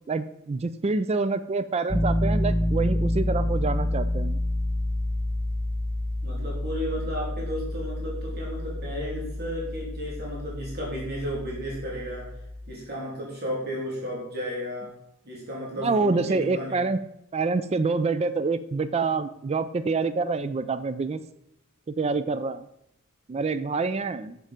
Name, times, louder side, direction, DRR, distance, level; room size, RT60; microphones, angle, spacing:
voice 1, 0.1-4.4 15.8-17.0 17.3-21.2 21.9-22.7 23.3-24.4, right 4 dB, 30° right, 13 dB, 0.4 m, -26 dB
Piano, 1.9-12.7, left 1 dB, 5° left, 0.7 m, -28 dB
voice 2, 6.2-12.3 12.7-14.9 15.2-16.8, equal, 50° right, -4 dB, 3.0 m, -33 dB
7.4 x 6.8 x 5.1 m, 0.77 s
head